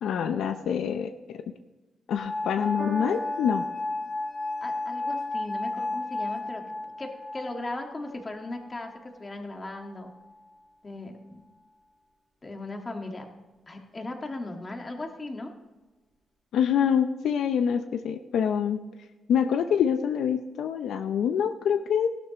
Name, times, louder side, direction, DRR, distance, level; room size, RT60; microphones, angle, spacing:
voice 1, 0.0-1.4 2.1-3.7 16.5-18.8 19.3-22.1, left 8 dB, 80° left, 8 dB, 0.6 m, -26 dB
sound 1, 2.2-9.1 9.9-10.5, left 2 dB, 60° left, 3.9 m, -33 dB
Piano, 2.8-9.4 10.2-10.3, right 3 dB, 30° right, 2.0 m, -48 dB
voice 2, 4.6-6.6 7.0-10.1 10.8-11.4 12.4-13.3 13.7-15.5, left 2 dB, 25° left, 3 dB, 1.6 m, -37 dB
16.5 x 12.0 x 3.0 m, 1.1 s
cardioid pair, 110°, 0 cm